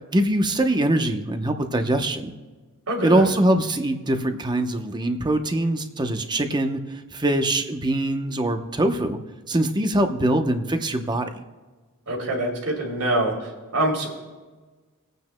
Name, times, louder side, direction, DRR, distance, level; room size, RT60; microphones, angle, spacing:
voice 1, 0.1-2.3 3.0-6.8 7.1-9.2 9.5-11.3, right 1 dB, 20° right, 6 dB, 0.8 m, -23 dB
voice 2, 2.9-3.3 12.1-14.1, right 1 dB, 80° right, -2 dB, 3.0 m, -25 dB
27.5 x 9.2 x 2.2 m, 1.3 s
head